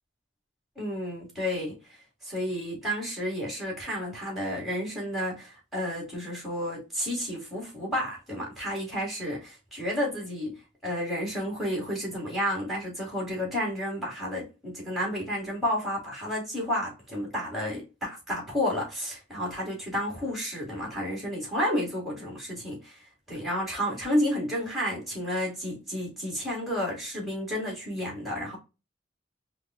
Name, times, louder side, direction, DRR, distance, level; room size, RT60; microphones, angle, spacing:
voice 1, 0.8-1.8 2.2-10.5 10.8-28.6, equal, ahead, 2.0 m, -31 dB
5.2 x 2.4 x 2.3 m
head